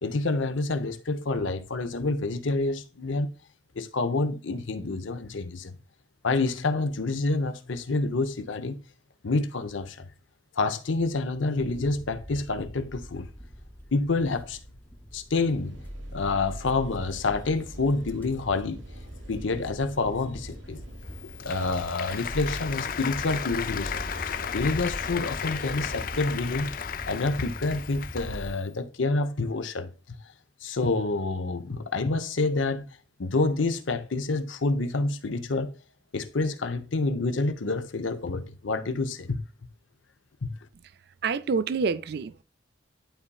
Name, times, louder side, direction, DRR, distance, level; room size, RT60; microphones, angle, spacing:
voice 1, 0.0-3.3 3.8-5.8 6.2-8.7 9.2-10.1 10.6-13.3 13.9-14.6 15.1-15.8 16.1-18.8 19.3-20.8 21.4-24.0 24.5-26.7 27.1-29.9 30.6-32.9 33.2-35.7 36.1-39.4 40.4-40.5, left 3 dB, 85° left, 0.8 m, -28 dB
sound 1, 11.6-28.5, equal, 10° left, 0.7 m, -41 dB
sound 2, 15.3-26.2, right 1 dB, 80° right, 1.1 m, -48 dB
Applause, 21.0-28.6, left 8 dB, 45° left, 0.4 m, -35 dB
voice 2, 41.2-42.4, right 5 dB, 55° right, 0.4 m, -27 dB
11.5 x 4.2 x 2.3 m
head